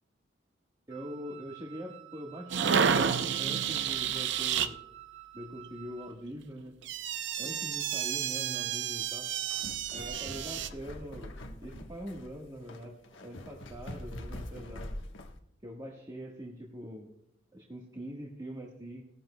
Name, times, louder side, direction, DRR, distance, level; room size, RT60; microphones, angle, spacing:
voice 1, 0.9-4.8 5.3-6.8 7.4-9.3 9.9-11.3 11.6-12.9 13.2-14.9 15.6-17.1 17.5-19.0, equal, 20° right, -2 dB, 1.4 m, -43 dB
Wind instrument woodwind instrument, 0.9-6.2, right 16 dB, 85° right, 1.5 m, -51 dB
sound 1, 2.5-4.7 6.8-10.7, right 8 dB, 65° right, 0.6 m, -30 dB
sound 2, 9.3-15.4, left 1 dB, 85° left, 1.2 m, -44 dB
18.0 x 13.0 x 2.2 m, 0.75 s
head